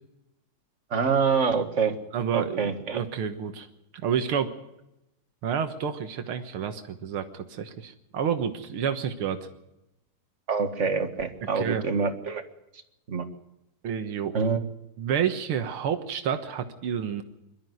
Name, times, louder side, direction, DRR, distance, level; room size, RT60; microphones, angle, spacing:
voice 1, 0.9-2.0 2.3-3.0 10.5-12.4 13.1-13.2 14.3-14.6, right 5 dB, 35° right, 7 dB, 1.9 m, -26 dB
voice 2, 2.1-3.7 4.0-4.5 5.4-9.5 11.6-11.9 13.8-14.5 15.0-17.2, right 8 dB, 90° right, 8 dB, 2.2 m, -29 dB
22.5 x 13.0 x 9.3 m, 0.88 s
omnidirectional pair, 2.3 m